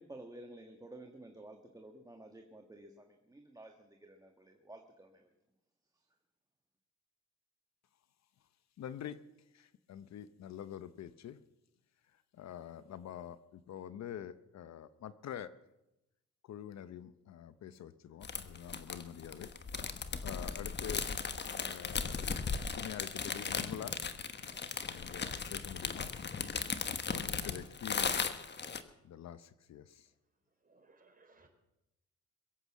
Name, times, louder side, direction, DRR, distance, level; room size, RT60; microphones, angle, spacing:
voice 1, 0.0-5.3, right 1 dB, 10° right, 3 dB, 1.5 m, -52 dB
voice 2, 8.8-9.2 9.5-11.4 12.1-15.5 16.4-19.5 20.2-21.1 21.5-24.0 24.9-26.1 27.1-28.3 29.0-30.1, left 10 dB, 60° left, 14 dB, 0.8 m, -46 dB
sound 1, 18.2-28.8, left 5 dB, 35° left, 1.3 m, -37 dB
voice 3, 30.7-31.5, right 3 dB, 30° right, 5 dB, 3.7 m, -64 dB
22.0 x 8.1 x 7.3 m, 0.90 s
cardioid pair, 90°, 30 cm